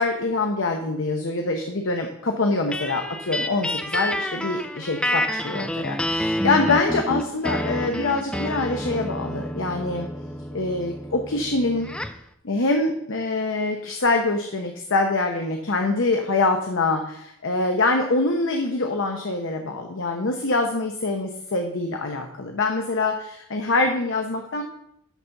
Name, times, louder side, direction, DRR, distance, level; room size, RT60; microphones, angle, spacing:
voice 1, 0.0-10.1 10.5-11.9 12.4-24.6, left 3 dB, 60° left, 4 dB, 0.9 m, -24 dB
sound 1, 2.7-12.2, left 1 dB, 5° left, 0.4 m, -29 dB
11.5 x 4.2 x 5.8 m, 0.75 s
head